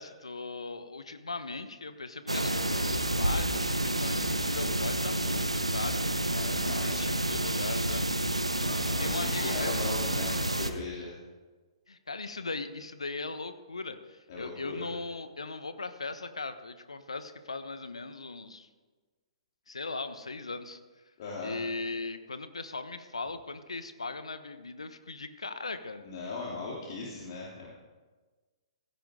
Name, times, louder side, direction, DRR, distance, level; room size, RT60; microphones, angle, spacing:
voice 1, 0.0-6.1 6.8-8.0 9.0-10.0 11.9-18.7 19.7-20.8 21.4-26.0, left 3 dB, 75° left, 11 dB, 1.1 m, -38 dB
sound 1, 2.3-10.7, right 1 dB, 90° right, 1.1 m, -29 dB
voice 2, 6.3-7.1 8.6-11.1 14.3-14.9 21.2-21.6 26.0-27.7, left 3 dB, 50° left, -4 dB, 3.1 m, -39 dB
16.0 x 15.5 x 3.8 m, 1.3 s
figure-of-eight pair, 120°, 3 cm